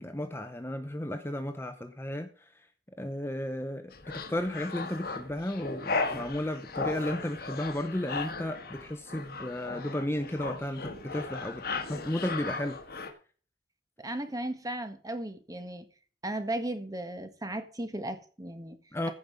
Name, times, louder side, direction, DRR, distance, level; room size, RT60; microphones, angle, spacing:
voice 1, 0.0-2.3 2.6-2.7 3.0-11.6 11.9-12.8 18.9-19.1, left 1 dB, 15° left, 0.8 m, -34 dB
sound 1, 3.9-13.1, left 3 dB, 60° left, 1.7 m, -36 dB
voice 2, 14.0-15.9 16.2-18.8, right 1 dB, 20° right, 1.5 m, -36 dB
15.0 x 5.4 x 5.1 m
head